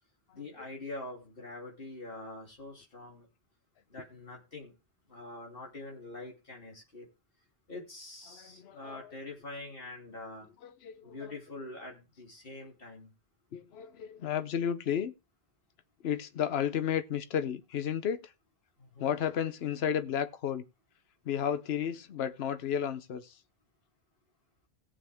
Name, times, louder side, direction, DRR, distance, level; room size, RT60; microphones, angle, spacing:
voice 1, 0.3-3.3 3.9-4.7 5.1-7.1 7.7-10.5 11.0-13.1 18.8-19.2, left 2 dB, 60° left, 3.2 m, -44 dB
voice 2, 8.3-9.1 10.6-11.1 13.5-15.1 16.0-18.2 19.0-20.6 21.3-23.3, left 9 dB, 75° left, 1.0 m, -32 dB
17.5 x 7.3 x 3.5 m
omnidirectional pair, 1.1 m